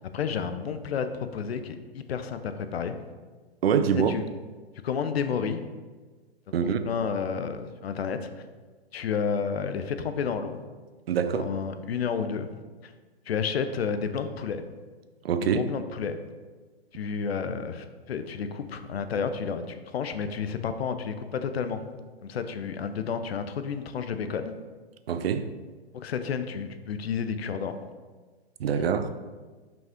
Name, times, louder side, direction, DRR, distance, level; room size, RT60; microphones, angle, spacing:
voice 1, 0.1-2.9 4.1-4.2 4.8-5.6 6.5-8.3 8.9-10.6 11.2-12.5 12.8-12.9 13.3-14.6 15.4-16.2 16.9-21.8 22.2-24.5 25.9-27.8, left 6 dB, 70° left, 9 dB, 0.7 m, -31 dB
voice 2, 3.6-4.1 6.5-6.8 11.1-11.5 15.2-15.7 25.1-25.5 28.6-29.1, right 7 dB, 65° right, 10 dB, 0.6 m, -24 dB
5.5 x 5.3 x 3.6 m, 1.3 s
hypercardioid pair, 120°, 32 cm